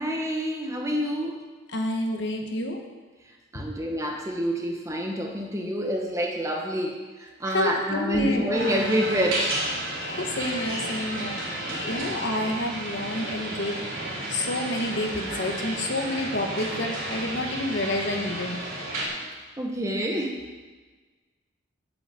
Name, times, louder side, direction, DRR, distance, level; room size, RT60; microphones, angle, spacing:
voice 1, 0.0-1.4 3.5-9.6 11.7-12.0 19.6-20.4, equal, 15° right, 1 dB, 1.2 m, -27 dB
voice 2, 1.7-2.8 3.5-3.6 7.4-8.5 10.1-13.8 14.3-18.6, left 1 dB, 60° left, 2 dB, 1.4 m, -29 dB
sound 1, 8.5-19.1, right 1 dB, 90° right, 3.9 m, -32 dB
8.0 x 7.2 x 8.4 m, 1.3 s
head